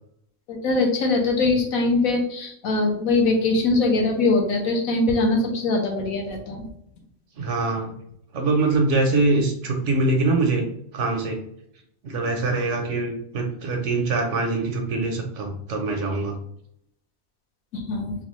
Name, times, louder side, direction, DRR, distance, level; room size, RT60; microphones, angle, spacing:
voice 1, 0.5-6.6 17.7-18.1, left 3 dB, 70° left, 1 dB, 1.2 m, -22 dB
voice 2, 7.4-7.9 8.3-10.6 10.9-11.4 12.0-16.4, right 3 dB, 65° right, 3 dB, 0.8 m, -23 dB
4.0 x 2.3 x 3.0 m, 0.73 s
omnidirectional pair, 1.5 m